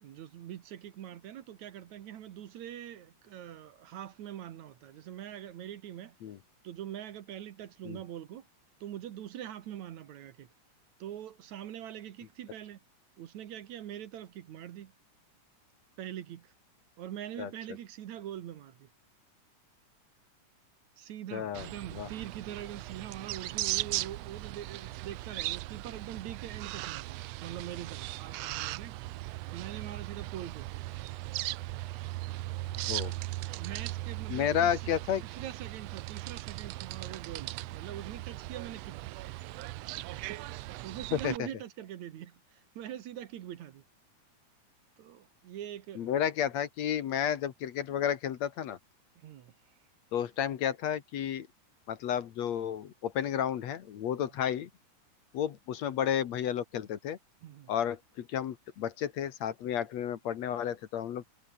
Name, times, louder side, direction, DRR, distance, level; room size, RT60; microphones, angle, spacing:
voice 1, 0.0-6.2 6.6-8.5 8.8-10.5 11.0-12.8 13.2-14.9 16.0-16.5 17.0-18.9 21.0-29.0 29.5-30.7 32.3-32.6 33.5-34.9 35.2-39.0 40.1-40.4 40.8-43.8 45.0-46.1 49.2-49.5 54.2-54.3 57.4-57.7, right 11 dB, 70° right, 2.5 m, -43 dB
voice 2, 21.3-21.7 21.9-22.1 32.9-33.1 34.3-35.2 41.1-41.5 46.0-48.8 50.1-51.5 51.9-54.7 55.3-57.2 57.7-61.2, left 9 dB, 60° left, 2.4 m, -32 dB
sound 1, 21.5-41.4, right 18 dB, 85° right, 1.4 m, -38 dB
omnidirectional pair, 3.6 m